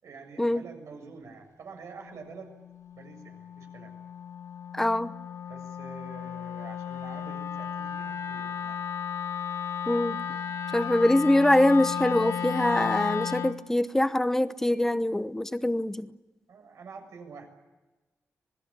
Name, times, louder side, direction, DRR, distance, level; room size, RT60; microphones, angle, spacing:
voice 1, 0.0-2.6 2.9-3.9 5.5-8.9 16.5-17.5, right 5 dB, 75° right, 7.3 m, -47 dB
Wind instrument woodwind instrument, 2.0-13.6, left 8 dB, 75° left, 1.6 m, -34 dB
voice 2, 4.7-5.1 9.9-10.2 10.7-16.1, left 1 dB, 10° left, 0.9 m, -24 dB
26.5 x 20.5 x 10.0 m
wide cardioid pair, 170°, 5 cm